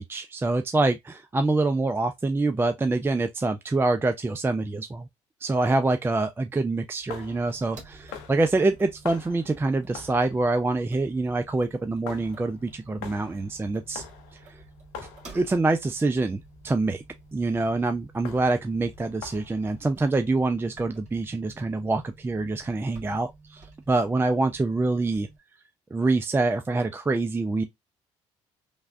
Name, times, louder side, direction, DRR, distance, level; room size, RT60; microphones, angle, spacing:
voice 1, 0.0-5.1 5.4-14.0 14.3-14.6 15.3-17.0 17.3-25.3 25.9-27.6, right 2 dB, 15° right, 0.4 m, -25 dB
sound 1, 7.0-19.8, left 6 dB, 80° left, 0.6 m, -46 dB
sound 2, 7.4-25.4, right 3 dB, 50° right, 1.5 m, -51 dB
3.3 x 2.2 x 2.4 m
hypercardioid pair, 55°, 16 cm